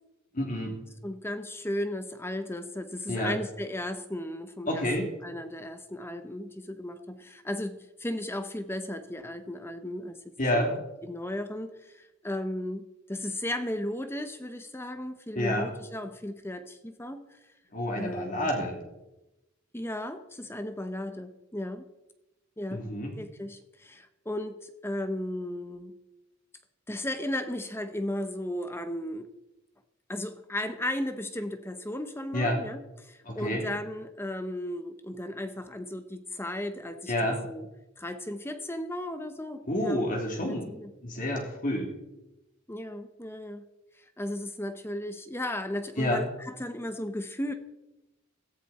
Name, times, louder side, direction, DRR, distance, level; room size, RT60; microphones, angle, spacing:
voice 1, 0.3-0.7 3.1-3.3 4.7-5.1 10.4-10.7 15.3-15.7 17.7-18.8 22.7-23.1 32.3-32.6 33.2-33.7 37.1-37.4 39.7-40.7 41.0-41.9 46.0-46.3, left 1 dB, 45° left, 1 dB, 3.1 m, -29 dB
voice 2, 1.0-4.9 5.2-10.2 10.5-17.4 18.0-18.5 19.7-21.9 22.6-22.9 23.2-25.9 26.9-29.3 30.1-37.7 38.0-40.0 40.5-40.9 42.7-43.7 44.0-47.5, left 1 dB, 10° left, 9 dB, 0.9 m, -35 dB
17.0 x 15.0 x 4.3 m, 0.96 s
head